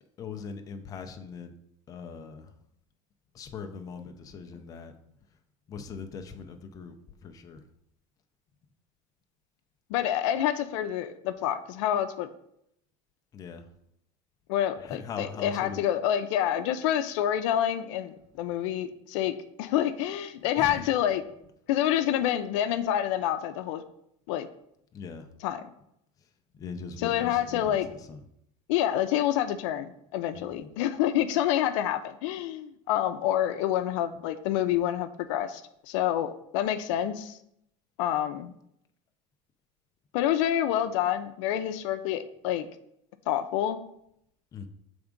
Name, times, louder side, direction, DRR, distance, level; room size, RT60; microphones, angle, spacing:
voice 1, 0.2-1.5 1.9-2.4 3.3-4.9 5.7-7.0 7.2-7.6 13.3-13.6 14.8-15.8 20.6-20.7 24.9-25.2 26.6-27.8 28.1-28.2 30.3-30.7 44.5-44.7, left 5 dB, 25° left, 5 dB, 0.5 m, -40 dB
voice 2, 9.9-12.3 14.5-21.2 21.7-23.8 24.3-24.5 25.4-25.7 27.0-27.9 28.7-35.6 35.9-37.4 38.0-38.5 40.1-42.7 43.3-43.8, left 11 dB, 85° left, 9 dB, 0.6 m, -27 dB
7.0 x 3.6 x 5.1 m, 0.75 s
cardioid pair, 165°, 15 cm